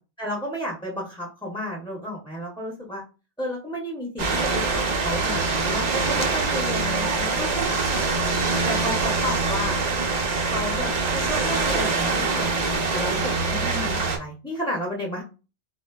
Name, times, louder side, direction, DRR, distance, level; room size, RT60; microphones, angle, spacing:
voice 1, 0.2-3.0 3.4-8.2 8.6-9.8 10.5-15.2, equal, 5° left, -3 dB, 0.4 m, -32 dB
sound 1, 4.2-14.2, right 3 dB, 50° right, 0.6 m, -24 dB
3.7 x 2.1 x 2.2 m, 0.32 s
omnidirectional pair, 1.0 m